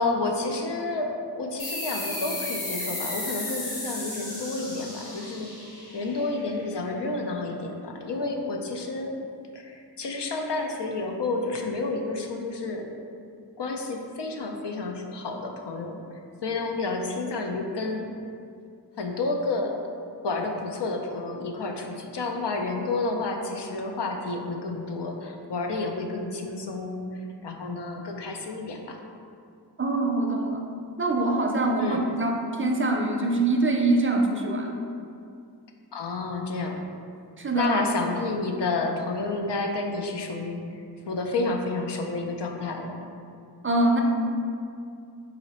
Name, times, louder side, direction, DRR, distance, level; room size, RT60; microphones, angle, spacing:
voice 1, 0.0-5.5 5.9-9.1 9.5-12.9 13.6-16.0 16.4-18.1 19.0-19.8 20.2-29.0 31.8-32.0 35.9-36.8 37.5-43.0, left 3 dB, 90° left, 2 dB, 0.5 m, -30 dB
sound 1, 1.6-6.8, left 1 dB, 60° left, 1.1 m, -34 dB
voice 2, 29.8-30.6 31.0-34.8 37.4-37.8 43.6-44.0, right 2 dB, 30° right, 1 dB, 0.4 m, -24 dB
4.0 x 2.8 x 4.2 m, 2.4 s
wide cardioid pair, 55°, 40 cm